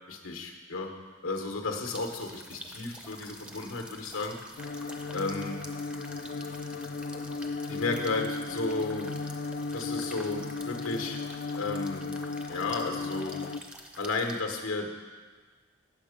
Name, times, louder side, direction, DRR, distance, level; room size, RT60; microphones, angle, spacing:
voice 1, 0.1-0.9 1.2-4.4 5.1-5.6 7.7-9.2 9.7-11.2 11.6-12.1 12.5-13.3 14.0-14.9, left 3 dB, 85° left, 3 dB, 1.1 m, -33 dB
sound 1, 1.8-14.4, equal, 5° right, 0.6 m, -47 dB
sound 2, 4.6-13.6, left 4 dB, 45° left, 0.3 m, -36 dB
8.6 x 7.0 x 5.1 m, 1.5 s
head